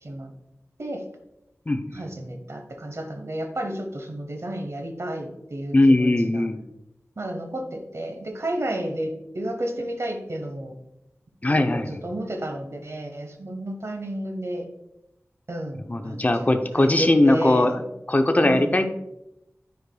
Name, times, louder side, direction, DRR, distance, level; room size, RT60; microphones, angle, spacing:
voice 1, 0.0-0.3 0.8-1.0 1.9-6.5 7.2-10.8 11.7-14.7 15.5-17.7 18.4-18.8, right 1 dB, 60° right, 5 dB, 1.0 m, -32 dB
voice 2, 1.7-2.1 5.7-6.6 11.4-12.0 15.9-18.9, left 1 dB, 30° left, 6 dB, 0.6 m, -20 dB
9.4 x 4.8 x 2.3 m, 0.86 s
wide cardioid pair, 45°, 5 cm